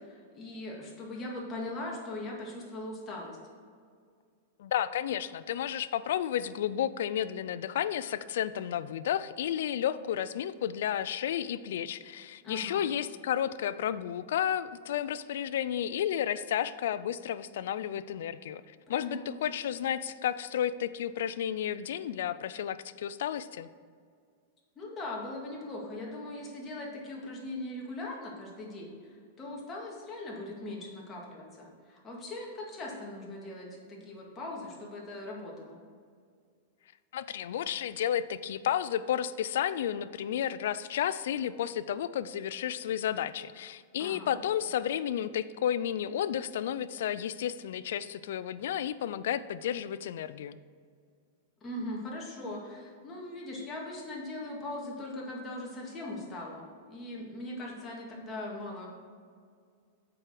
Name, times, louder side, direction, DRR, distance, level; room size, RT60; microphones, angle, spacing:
voice 1, 0.0-3.4 12.4-12.9 18.9-19.5 24.8-35.8 44.0-44.4 51.6-58.9, left 1 dB, 20° left, -3 dB, 1.9 m, -40 dB
voice 2, 4.6-23.7 37.1-50.6, left 10 dB, 70° left, 15 dB, 0.4 m, -32 dB
7.8 x 4.9 x 6.0 m, 2.1 s
supercardioid pair, 145°, 0 cm